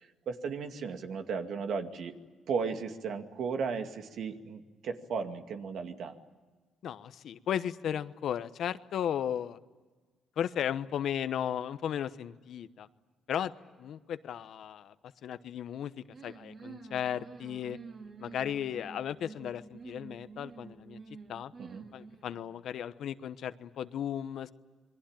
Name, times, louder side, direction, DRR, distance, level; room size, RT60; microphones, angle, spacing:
voice 1, 0.0-2.1 2.5-6.2 21.6-21.9, right 5 dB, 70° right, 6 dB, 2.3 m, -35 dB
voice 2, 6.8-9.6 10.4-12.9 13.3-13.5 13.8-14.9 15.2-17.8 18.2-21.0 21.3-21.5 21.9-24.5, left 9 dB, 70° left, 13 dB, 1.1 m, -35 dB
sound 1, 16.1-22.5, right 4 dB, 45° right, 2.6 m, -49 dB
28.0 x 22.5 x 8.9 m, 1.3 s
cardioid pair, 90°, 0 cm